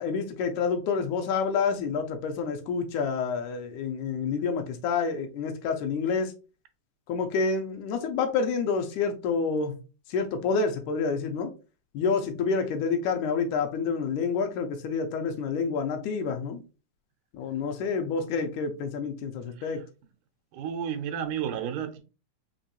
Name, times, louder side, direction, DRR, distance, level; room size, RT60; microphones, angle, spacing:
voice 1, 0.0-6.3 7.1-9.8 10.1-11.5 11.9-16.6 17.3-19.8, left 5 dB, 80° left, 2.1 m, -28 dB
voice 2, 20.5-22.0, right 8 dB, 90° right, 2.3 m, -32 dB
5.5 x 3.0 x 2.9 m
omnidirectional pair, 3.6 m